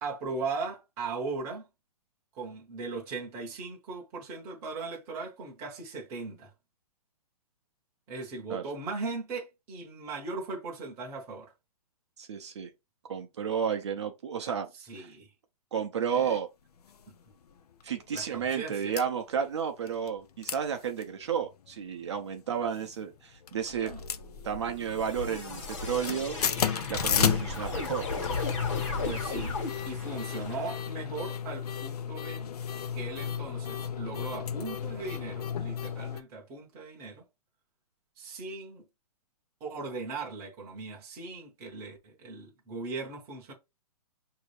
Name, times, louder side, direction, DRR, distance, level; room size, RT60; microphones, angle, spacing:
voice 1, 0.0-1.7 2.3-6.5 8.1-11.5 14.9-15.3 16.1-16.4 18.1-18.9 23.8-24.0 27.4-27.6 29.0-29.6 29.9-32.5 32.9-37.2 38.2-38.8 39.6-43.5, right 3 dB, 10° right, 0.7 m, -38 dB
voice 2, 12.2-12.7 13.1-14.7 15.0-15.1 15.7-16.5 17.8-23.9 24.4-26.4 26.9-28.1, right 7 dB, 45° right, 0.5 m, -32 dB
sound 1, 16.9-17.0 17.5-17.6 17.8-18.3 18.7-19.0 19.9-20.2 20.4-20.6 20.9-21.0 21.5-21.9 22.6-23.1 23.5-24.8 25.1-25.4 25.7-36.2, left 8 dB, 75° left, 0.6 m, -33 dB
sound 2, 23.7-30.8, left 3 dB, 50° left, 1.4 m, -35 dB
5.7 x 2.7 x 3.1 m
hypercardioid pair, 175°, 20 cm